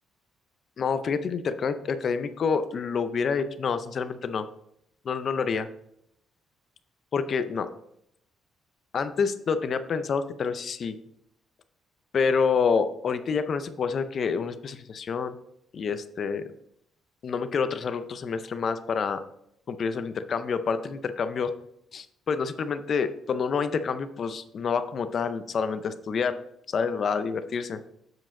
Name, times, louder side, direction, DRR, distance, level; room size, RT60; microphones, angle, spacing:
voice 1, 0.8-4.5 5.0-5.7 7.1-7.7 8.9-11.0 12.1-15.4 15.7-16.4 17.2-19.2 19.7-21.5 21.9-26.3 26.7-27.8, left 5 dB, 45° left, 11 dB, 0.5 m, -28 dB
7.7 x 4.9 x 3.7 m, 0.75 s
cardioid pair, 140°, 0 cm